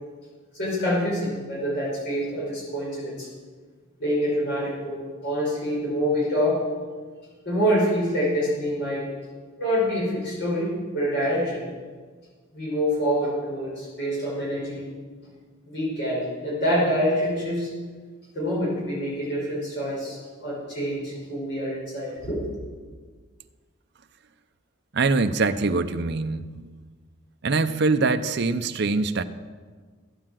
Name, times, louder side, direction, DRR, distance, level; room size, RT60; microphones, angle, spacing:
voice 1, 0.5-3.3 4.0-6.6 7.4-9.1 9.6-11.6 12.5-14.8 15.7-17.7 18.3-22.4, equal, 55° left, -6 dB, 5.5 m, -26 dB
voice 2, 24.9-26.7 27.4-29.2, right 3 dB, 50° right, 9 dB, 0.6 m, -23 dB
14.5 x 8.7 x 7.5 m, 1.5 s
head